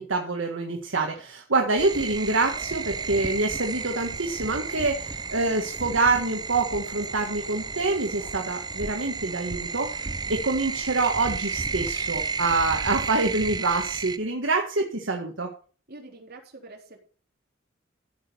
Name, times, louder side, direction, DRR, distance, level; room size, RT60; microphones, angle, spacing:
voice 1, 0.0-15.5, right 3 dB, 70° right, 3 dB, 1.6 m, -26 dB
sound 1, 1.8-14.2, right 4 dB, 20° right, 0.6 m, -32 dB
voice 2, 15.9-17.0, right 2 dB, 55° right, 1 dB, 3.7 m, -45 dB
15.0 x 6.3 x 6.9 m, 0.41 s
head